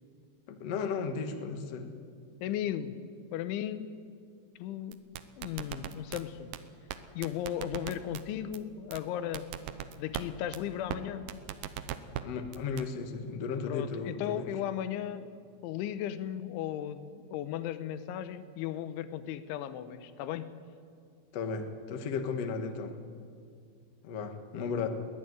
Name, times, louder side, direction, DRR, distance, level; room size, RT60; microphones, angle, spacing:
voice 1, 0.5-1.9 12.2-14.5 21.3-23.0 24.0-24.9, left 5 dB, 65° left, 6 dB, 1.6 m, -35 dB
voice 2, 2.4-3.0 3.3-3.9 4.6-5.0 5.4-6.5 7.2-9.5 10.0-11.2 13.7-15.3 15.6-20.5, left 11 dB, 85° left, 12 dB, 3.3 m, -36 dB
sound 1, 4.9-6.2 6.5-6.6 6.9-7.0 7.2-8.2 8.5-8.6 8.9-9.0 9.3-10.2 10.5-10.6 10.9-11.0 11.3-12.2 12.5-12.8, right 12 dB, 85° right, 2.1 m, -37 dB
21.5 x 17.0 x 9.7 m, 2.2 s
omnidirectional pair, 5.4 m